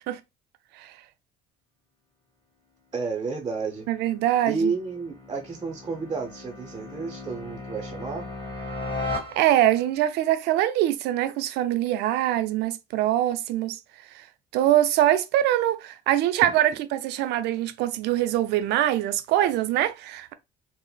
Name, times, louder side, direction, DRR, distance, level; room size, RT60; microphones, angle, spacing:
voice 1, 2.9-3.9 4.5-8.3, right 4 dB, 25° right, 0.6 m, -31 dB
sound 1, 3.5-9.9, left 2 dB, 30° left, 0.9 m, -37 dB
voice 2, 3.9-4.7 9.4-13.8 14.5-20.3, right 13 dB, 85° right, 0.4 m, -23 dB
3.7 x 2.0 x 2.2 m
cardioid pair, 110°, 17 cm